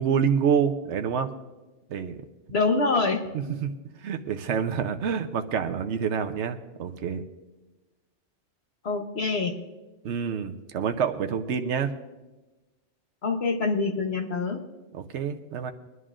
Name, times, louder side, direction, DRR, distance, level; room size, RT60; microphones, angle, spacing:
voice 1, 0.0-1.3 1.9-2.2 3.3-7.2 10.0-11.9 14.9-15.7, right 7 dB, 80° right, 7 dB, 1.1 m, -27 dB
voice 2, 2.5-3.5 8.8-9.6 13.2-14.6, left 3 dB, 65° left, 4 dB, 1.3 m, -26 dB
22.5 x 11.0 x 2.5 m, 1.1 s
omnidirectional pair, 1.2 m